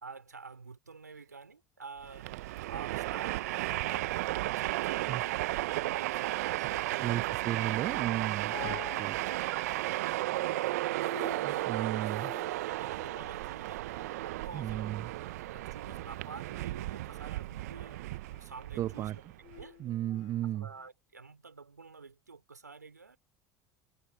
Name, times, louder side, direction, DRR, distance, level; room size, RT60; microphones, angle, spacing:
voice 1, 0.0-2.3 2.7-7.1 9.3-12.1 12.7-14.9 15.5-19.2 19.6-19.8 20.4-23.2, right 4 dB, 90° right, 3.9 m, -49 dB
Train, 2.0-19.6, right 18 dB, 65° right, 0.9 m, -34 dB
voice 2, 7.0-9.2 9.5-9.7 11.4-12.3 14.5-15.1 18.8-19.2 19.8-20.7, right 13 dB, 40° right, 0.4 m, -35 dB
sound 1, 8.5-20.9, left 20 dB, 55° left, 3.7 m, -52 dB
figure-of-eight pair, 75°, 9 cm